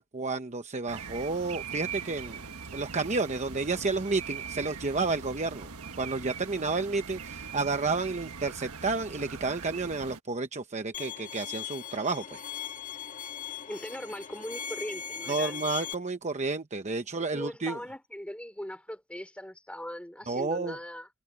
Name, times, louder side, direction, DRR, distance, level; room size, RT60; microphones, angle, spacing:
voice 1, 0.0-2.5 2.7-5.7 6.0-12.4 15.3-17.8 20.3-20.8, right 3 dB, 30° right, 0.9 m, -31 dB
sound 1, 0.9-10.2, right 6 dB, 80° right, 1.4 m, -41 dB
Bowed string instrument, 10.9-15.9, left 9 dB, 35° left, 1.8 m, -39 dB
voice 2, 13.7-15.7 17.2-21.1, equal, 5° left, 4.5 m, -40 dB
head